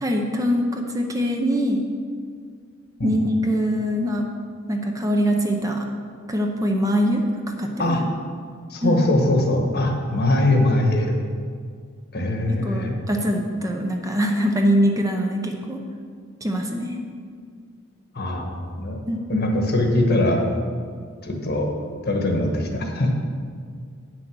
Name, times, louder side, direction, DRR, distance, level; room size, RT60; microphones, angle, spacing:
voice 1, 0.0-1.8 3.0-4.3 4.7-5.9 6.3-7.2 7.6-8.0 8.8-9.0 12.6-15.8 16.4-17.0 19.1-19.2, equal, 15° right, 2 dB, 0.8 m, -23 dB
voice 2, 8.7-11.1 12.1-13.0 18.1-19.0 19.3-20.5 21.2-21.7 22.1-23.1, left 1 dB, 55° left, 2 dB, 1.3 m, -21 dB
9.1 x 6.3 x 6.2 m, 2.1 s
head